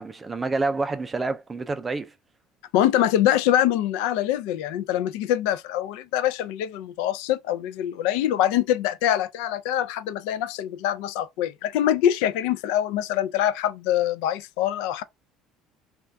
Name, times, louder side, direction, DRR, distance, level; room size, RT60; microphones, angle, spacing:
voice 1, 0.0-2.1, right 3 dB, 15° right, 0.3 m, -28 dB
voice 2, 2.7-15.0, left 11 dB, 90° left, 0.3 m, -24 dB
2.5 x 2.2 x 3.3 m
cardioid pair, 170°, 0 cm